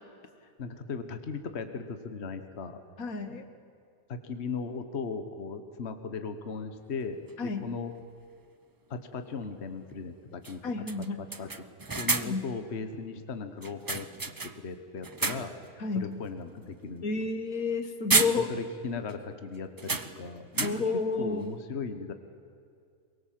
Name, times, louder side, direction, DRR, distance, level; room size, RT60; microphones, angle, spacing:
voice 1, 0.6-2.8 4.1-7.9 8.9-10.8 11.4-11.5 12.0-14.1 14.6-15.5 15.9-17.3 18.5-20.7 21.1-22.1, left 4 dB, 50° left, 8 dB, 1.5 m, -37 dB
voice 2, 3.0-3.5 7.4-7.7 10.6-11.2 12.2-12.4 15.8-16.1 17.0-18.6 20.6-21.5, left 4 dB, 70° left, 7 dB, 1.9 m, -31 dB
sound 1, 7.3-7.4 9.4-9.6 9.9-10.0 10.4-10.6 10.9-12.5 13.6-14.7 15.0-15.7 16.1-16.3 17.6-17.8 18.1-18.8 19.1-19.2 19.8-21.0, right 3 dB, 30° right, 0.4 m, -31 dB
23.0 x 22.0 x 7.6 m, 2.4 s
omnidirectional pair, 1.5 m